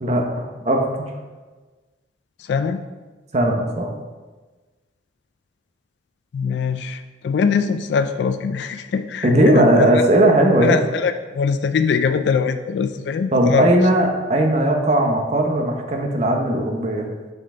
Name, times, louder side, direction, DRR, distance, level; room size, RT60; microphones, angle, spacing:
voice 1, 0.0-1.1 3.3-3.9 9.2-10.8 13.3-17.1, right 1 dB, 35° right, 2 dB, 0.8 m, -18 dB
voice 2, 2.4-2.8 6.3-10.0 10.6-13.7, left 5 dB, 70° left, 9 dB, 0.3 m, -22 dB
5.7 x 5.3 x 3.7 m, 1.3 s
head